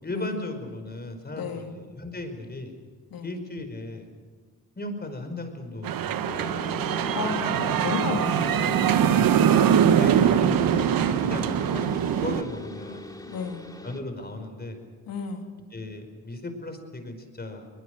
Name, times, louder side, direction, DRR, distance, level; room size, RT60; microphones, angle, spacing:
voice 1, 0.0-2.7 3.2-4.1 4.8-6.5 9.7-13.1 13.8-14.8 15.7-17.7, left 2 dB, 25° left, 6 dB, 4.9 m, -36 dB
voice 2, 1.3-1.7 3.1-3.4 7.1-9.1 13.3-13.6 15.1-15.5, left 5 dB, 75° left, 3 dB, 2.9 m, -33 dB
sound 1, 5.8-12.4, right 9 dB, 70° right, 1.2 m, -22 dB
sound 2, 6.3-14.0, left 1 dB, 10° left, 2.3 m, -38 dB
22.0 x 21.0 x 6.6 m, 1.5 s
cardioid pair, 70°, 36 cm